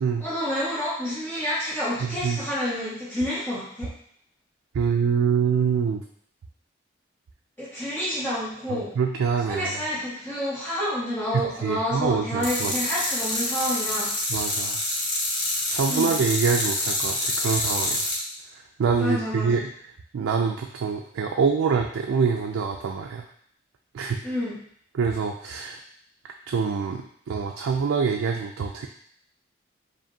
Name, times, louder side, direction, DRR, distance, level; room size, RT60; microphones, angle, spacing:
voice 1, 0.2-3.9 7.6-8.9 9.4-14.1 15.9-16.1 19.0-19.5 24.2-24.6, equal, 10° left, -9 dB, 1.5 m, -29 dB
voice 2, 2.0-2.5 4.7-6.0 8.7-9.8 11.6-12.7 14.3-14.8 15.7-18.1 18.5-19.7 20.1-23.3 23.9-24.3 24.9-25.8 26.5-28.9, right 6 dB, 85° right, 2 dB, 0.3 m, -25 dB
sound 1, 12.4-18.2, left 1 dB, 60° left, 1.3 m, -27 dB
4.9 x 2.6 x 2.7 m, 0.63 s
head